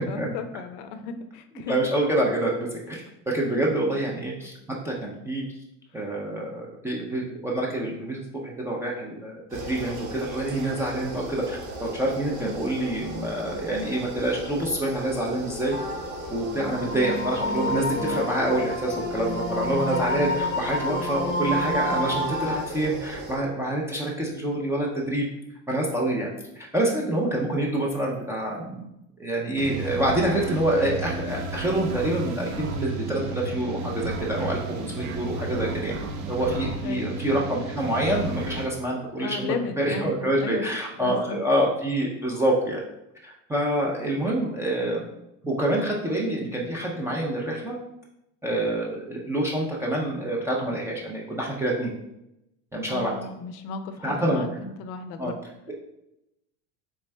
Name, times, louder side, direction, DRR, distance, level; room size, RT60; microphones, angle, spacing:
voice 1, 0.0-1.7 3.5-3.9 36.8-37.2 39.2-40.7 41.0-41.4 52.9-55.4, left 5 dB, 65° left, 9 dB, 0.5 m, -35 dB
voice 2, 1.7-4.5 4.8-5.4 5.9-15.8 16.3-25.3 25.7-28.9 29.2-36.0 36.2-42.8 43.2-45.0 45.4-47.8 48.4-51.9 52.7-53.1 54.0-54.4 55.2-55.3, right 1 dB, 10° right, -3 dB, 0.3 m, -27 dB
sound 1, 9.5-23.4, right 1 dB, 85° right, 1.0 m, -37 dB
sound 2, 15.7-22.6, left 1 dB, 25° left, 0.7 m, -29 dB
sound 3, 29.6-38.7, right 3 dB, 55° right, 0.6 m, -33 dB
3.5 x 3.1 x 3.2 m, 0.85 s
supercardioid pair, 140°, 34 cm